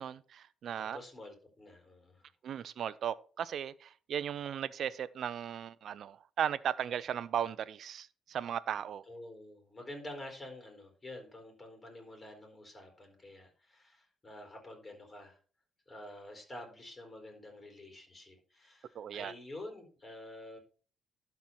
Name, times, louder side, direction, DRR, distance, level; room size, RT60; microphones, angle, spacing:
voice 1, 0.0-1.0 2.4-9.0 18.9-19.3, right 9 dB, 65° right, 0.5 m, -36 dB
voice 2, 0.8-2.2 9.1-15.4 15.9-20.6, left 1 dB, 25° left, 4.2 m, -48 dB
12.0 x 4.5 x 5.6 m
cardioid pair, 90°, 0 cm